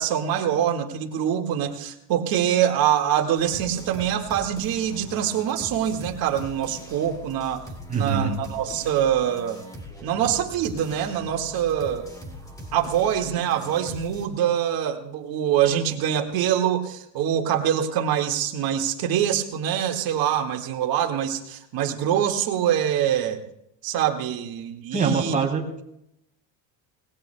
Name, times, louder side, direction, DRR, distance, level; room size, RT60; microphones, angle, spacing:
voice 1, 0.0-7.6 7.9-9.6 10.0-12.1 12.7-23.4 23.8-25.4, right 10 dB, 55° right, 3 dB, 1.9 m, -24 dB
sound 1, 3.3-14.3, equal, 10° left, 2.6 m, -41 dB
voice 2, 7.9-8.3 24.9-25.8, right 5 dB, 20° right, 1 dB, 2.7 m, -24 dB
26.5 x 19.5 x 2.2 m, 0.79 s
cardioid pair, 135°, 43 cm